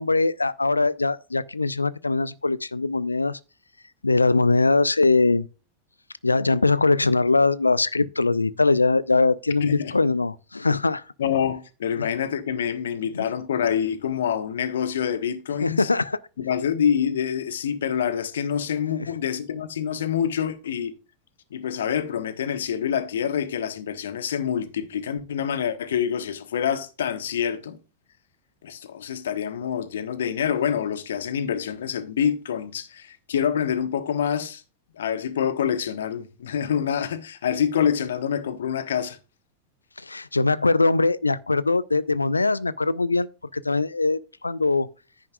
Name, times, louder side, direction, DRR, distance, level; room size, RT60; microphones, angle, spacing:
voice 1, 0.0-3.4 4.0-5.5 6.2-11.0 12.0-12.1 13.1-13.2 15.6-16.2 19.0-19.1 40.0-43.3 43.5-44.9, left 3 dB, 80° left, 0.4 m, -22 dB
voice 2, 9.6-9.9 11.2-15.9 16.4-20.9 21.5-27.8 28.6-34.6 35.0-39.2, left 8 dB, 65° left, 1.1 m, -26 dB
10.0 x 9.9 x 2.3 m
figure-of-eight pair, 90°, 0 cm